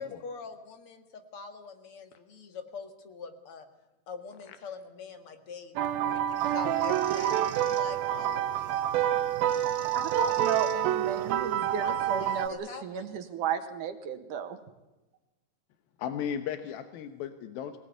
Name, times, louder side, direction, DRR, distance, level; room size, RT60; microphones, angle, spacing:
voice 1, 0.0-3.7 4.1-5.7 6.0-8.9 11.8-13.1, left 5 dB, 45° left, 7 dB, 2.2 m, -44 dB
sound 1, 5.8-12.5, right 11 dB, 85° right, 2.7 m, -28 dB
sound 2, 6.3-12.5, right 3 dB, 20° right, 2.6 m, -50 dB
voice 2, 9.9-14.6, right 7 dB, 65° right, 8 dB, 2.7 m, -33 dB
voice 3, 16.0-17.8, left 8 dB, 85° left, 8 dB, 2.9 m, -35 dB
22.5 x 18.0 x 9.4 m, 1.0 s
omnidirectional pair, 4.1 m